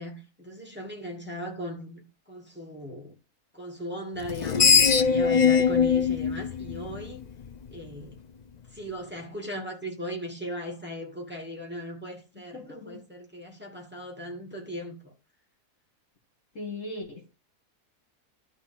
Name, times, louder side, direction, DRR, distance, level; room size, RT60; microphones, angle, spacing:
voice 1, 0.0-3.2 3.5-7.3 7.7-8.2 8.7-15.1, equal, 5° right, 2.3 m, -38 dB
Screech, 4.2-7.5, left 6 dB, 70° left, 0.4 m, -21 dB
voice 2, 12.5-13.0 16.6-17.3, left 2 dB, 55° left, 2.0 m, -38 dB
12.0 x 4.1 x 7.2 m
omnidirectional pair, 1.7 m